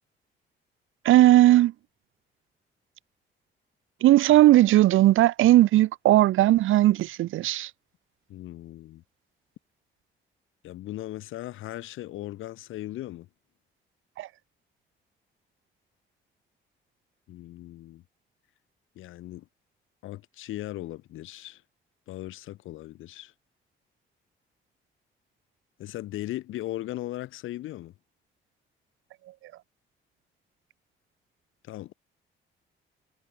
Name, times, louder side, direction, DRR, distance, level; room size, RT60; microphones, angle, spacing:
voice 1, 1.0-1.7 4.0-7.7 14.2-14.3, right 15 dB, 85° right, 3.2 m, -18 dB
voice 2, 8.3-9.0 10.6-13.3 17.3-18.0 19.0-19.4 20.0-21.6 22.1-23.3 25.8-27.9 31.6-31.9, left 15 dB, 85° left, 6.0 m, -38 dB
cardioid pair, 90°, 20 cm